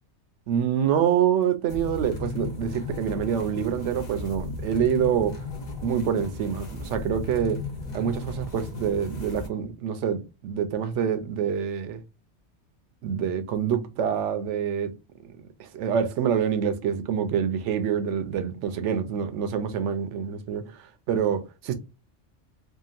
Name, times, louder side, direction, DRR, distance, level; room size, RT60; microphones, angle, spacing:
voice 1, 0.5-5.4 5.8-7.6 7.9-12.0 13.0-14.9 15.2-15.3 15.6-21.7, right 8 dB, 80° right, 0.9 m, -26 dB
sound 1, 1.7-9.5, left 3 dB, 45° left, 0.8 m, -35 dB
2.8 x 2.4 x 2.4 m
omnidirectional pair, 1.2 m